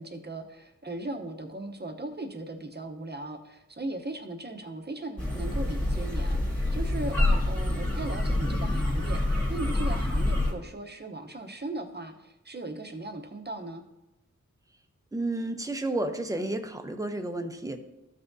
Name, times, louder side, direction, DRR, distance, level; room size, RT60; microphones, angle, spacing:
voice 1, 0.0-13.8, right 2 dB, 35° right, 4 dB, 0.9 m, -38 dB
sound 1, 5.2-10.5, left 1 dB, 5° left, 1.7 m, -27 dB
voice 2, 15.1-17.8, right 2 dB, 10° right, 6 dB, 0.7 m, -31 dB
13.5 x 5.9 x 2.7 m, 0.94 s
wide cardioid pair, 100°, 31 cm